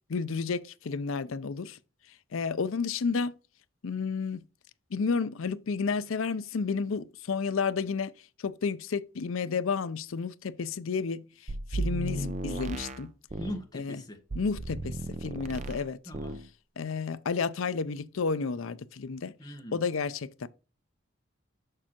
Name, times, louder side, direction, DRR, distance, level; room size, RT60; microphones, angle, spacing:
voice 1, 0.1-1.8 2.3-3.3 3.8-4.4 4.9-8.1 8.4-13.1 13.7-14.0 14.3-16.0 16.8-19.3 19.7-20.5, left 5 dB, 75° left, 0.5 m, -31 dB
sound 1, 11.5-13.6 14.3-15.9 16.1-16.5, right 2 dB, 35° right, 0.5 m, -35 dB
voice 2, 13.4-14.2 16.0-16.4 19.4-19.8, equal, 20° left, 1.3 m, -40 dB
6.6 x 6.1 x 2.9 m
head